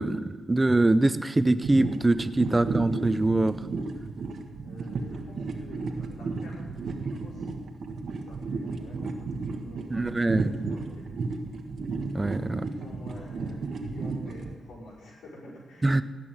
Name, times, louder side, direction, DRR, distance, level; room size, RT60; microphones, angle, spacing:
voice 1, 0.0-3.5 9.9-10.8 12.1-12.6 15.8-16.0, right 2 dB, 25° right, 13 dB, 0.8 m, -24 dB
sound 1, 1.6-14.5, right 4 dB, 70° right, 1.5 m, -34 dB
voice 2, 4.6-7.4 8.2-9.2 9.5-11.5 12.5-16.0, left 1 dB, 80° left, -10 dB, 5.0 m, -47 dB
17.0 x 6.1 x 9.0 m, 1.4 s
cardioid pair, 60°, 0 cm